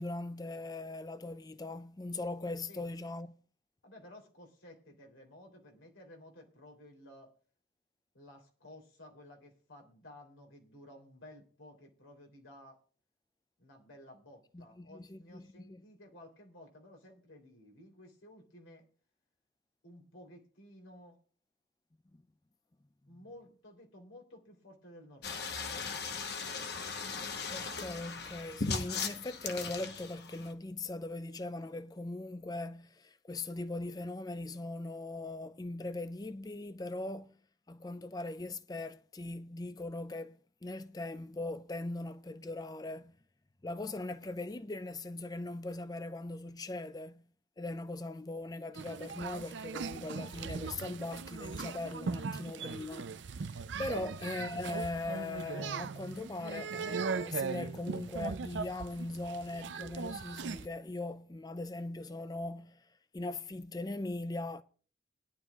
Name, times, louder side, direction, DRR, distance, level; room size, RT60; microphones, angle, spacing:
voice 1, 0.0-3.3 14.5-15.8 22.1-22.2 23.1-23.2 27.5-37.4 37.7-43.1 43.6-47.2 47.6-62.9 63.1-64.6, left 2 dB, 20° left, 0.4 m, -40 dB
voice 2, 3.8-7.3 8.1-12.8 13.6-18.8 19.8-21.2 23.1-25.5 53.9-54.0, left 1 dB, 90° left, 3.4 m, -55 dB
sound 1, 25.2-30.5, left 4 dB, 55° left, 1.0 m, -38 dB
sound 2, 48.7-60.7, right 5 dB, 70° right, 0.5 m, -39 dB
20.0 x 11.0 x 2.4 m
head